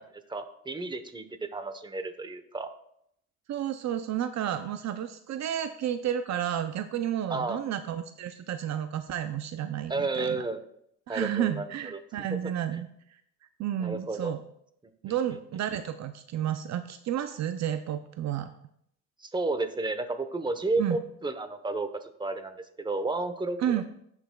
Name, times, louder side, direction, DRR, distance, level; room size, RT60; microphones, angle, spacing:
voice 1, 0.3-1.2 1.5-2.7 7.3-7.6 9.9-10.6 11.1-12.0 13.8-14.3 15.1-15.2 19.2-23.6, right 3 dB, 15° right, 9 dB, 0.9 m, -32 dB
voice 2, 3.5-10.4 11.1-12.9 13.6-14.4 15.0-18.5 20.8-21.0 23.6-23.8, right 10 dB, 65° right, 10 dB, 0.5 m, -31 dB
16.5 x 5.8 x 2.3 m, 0.71 s
cardioid pair, 90°, 30 cm